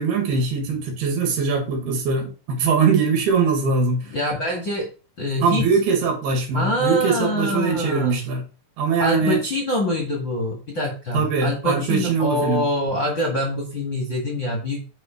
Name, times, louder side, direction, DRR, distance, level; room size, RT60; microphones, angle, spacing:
voice 1, 0.0-4.0 5.4-8.4 8.8-9.4 11.1-12.6, right 5 dB, 70° right, 3 dB, 3.9 m, -21 dB
voice 2, 4.1-4.9 5.2-5.7 6.5-8.2 9.0-14.8, left 1 dB, 45° left, -1 dB, 1.7 m, -25 dB
9.7 x 5.0 x 4.6 m, 0.34 s
omnidirectional pair, 4.8 m